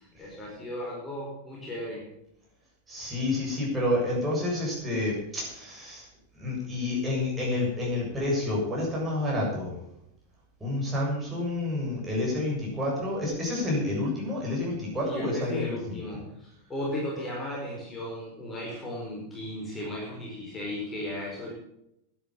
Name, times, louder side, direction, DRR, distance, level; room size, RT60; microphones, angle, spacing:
voice 1, 0.0-2.1 15.0-21.5, left 1 dB, 15° left, -4 dB, 5.1 m, -35 dB
voice 2, 2.9-6.1 6.4-9.8 10.6-16.0, left 2 dB, 15° right, -4 dB, 7.3 m, -29 dB
12.5 x 10.5 x 7.5 m, 0.79 s
figure-of-eight pair, 90°, 0 cm